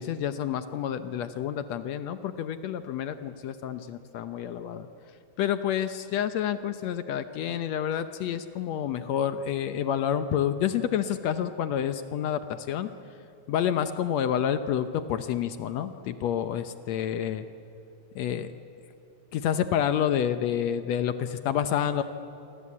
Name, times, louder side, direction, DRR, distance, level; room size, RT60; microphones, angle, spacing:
voice 1, 0.0-4.9 5.4-12.9 13.5-17.5 18.2-18.5 19.3-22.0, left 9 dB, 70° left, 10 dB, 1.8 m, -29 dB
28.0 x 24.0 x 8.5 m, 2.8 s
omnidirectional pair, 3.6 m